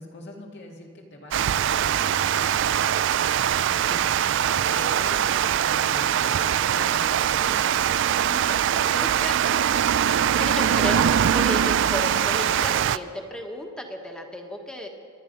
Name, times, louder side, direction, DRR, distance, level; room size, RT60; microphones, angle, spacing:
voice 1, 0.0-3.1 3.7-4.2 4.7-7.8 8.3-8.9, left 1 dB, 55° left, 0 dB, 2.2 m, -42 dB
Water, 1.3-13.0, right 9 dB, 65° right, 0.4 m, -22 dB
voice 2, 8.8-14.9, equal, 5° left, 2 dB, 1.4 m, -34 dB
24.5 x 10.0 x 5.3 m, 2.2 s
head